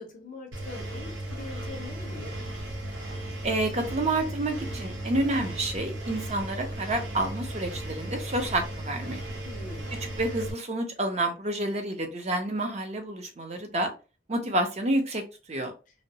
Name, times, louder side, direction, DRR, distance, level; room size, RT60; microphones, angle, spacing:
voice 1, 0.0-2.3 9.5-9.9, left 3 dB, 40° left, 0.5 m, -42 dB
Engine, 0.5-10.5, right 1 dB, 65° right, 0.8 m, -36 dB
voice 2, 3.4-9.2 10.2-13.9 14.3-15.2 15.5-15.7, right 1 dB, 35° right, 0.5 m, -29 dB
2.7 x 2.0 x 2.7 m
head